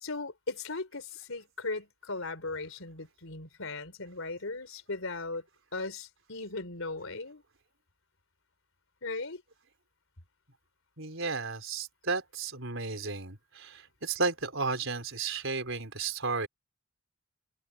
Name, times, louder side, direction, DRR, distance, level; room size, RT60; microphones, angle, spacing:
voice 1, 0.0-5.4 5.7-7.4 9.0-9.4, left 3 dB, 75° left, 3.7 m, -37 dB
voice 2, 11.0-16.5, right 4 dB, 65° right, 4.8 m, -33 dB
head